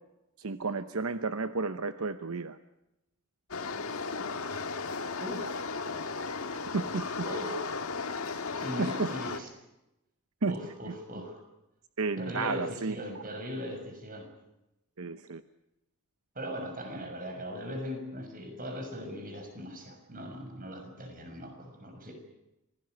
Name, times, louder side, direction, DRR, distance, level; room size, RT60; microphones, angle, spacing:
voice 1, 0.4-2.6 6.7-7.0 8.8-9.1 10.4-10.6 12.0-13.0 15.0-15.4, right 4 dB, 75° right, 10 dB, 0.9 m, -32 dB
sound 1, 3.5-9.4, left 4 dB, 75° left, 1.6 m, -35 dB
voice 2, 5.2-5.5 7.2-7.7 8.5-9.5 10.5-11.4 12.2-14.3 16.3-22.1, equal, 40° right, 5 dB, 6.5 m, -39 dB
26.0 x 17.5 x 9.4 m, 0.91 s
head